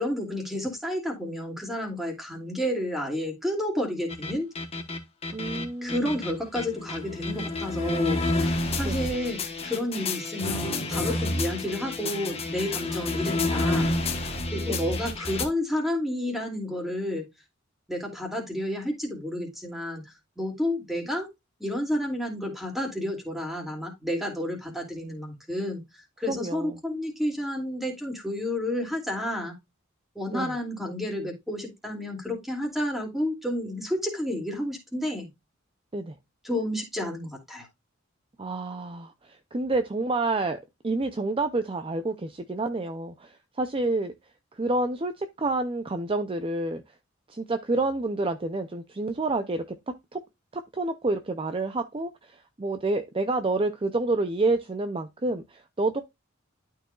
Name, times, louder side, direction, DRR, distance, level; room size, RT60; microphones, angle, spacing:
voice 1, 0.0-4.5 5.8-17.3 17.9-21.3 21.6-29.5 30.1-35.3 36.4-37.7, left 1 dB, ahead, 2.5 m, -31 dB
sound 1, 4.1-15.4, left 2 dB, 30° left, 1.2 m, -29 dB
voice 2, 5.3-6.1 8.8-9.1 14.7-14.8 26.3-26.7 30.3-30.5 35.9-36.1 38.4-44.1 44.5-46.8 47.3-49.6 50.1-50.2 50.5-52.3 52.6-56.0, right 2 dB, 25° right, 0.5 m, -28 dB
12.0 x 4.6 x 2.4 m
head